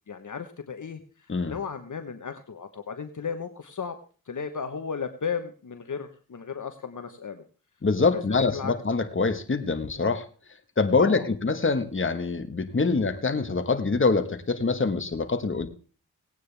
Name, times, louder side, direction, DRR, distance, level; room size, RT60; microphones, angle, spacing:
voice 1, 0.1-1.0 1.5-4.0 4.3-7.4 8.1-8.7 11.0-11.3 12.8-13.0, left 6 dB, 55° left, 8 dB, 1.2 m, -35 dB
voice 2, 7.8-10.2 10.8-15.7, left 4 dB, 35° left, 8 dB, 1.4 m, -25 dB
18.0 x 9.2 x 3.4 m, 0.38 s
cardioid pair, 50°, 37 cm